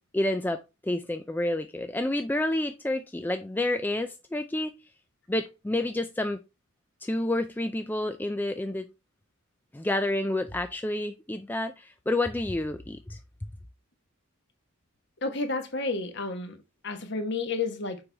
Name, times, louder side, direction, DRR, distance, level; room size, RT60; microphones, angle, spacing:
voice 1, 0.1-4.7 5.3-6.4 7.0-8.8 9.7-13.2, left 1 dB, 10° left, 0.3 m, -29 dB
voice 2, 15.2-18.0, left 3 dB, 50° left, 1.2 m, -31 dB
6.9 x 5.4 x 3.4 m
head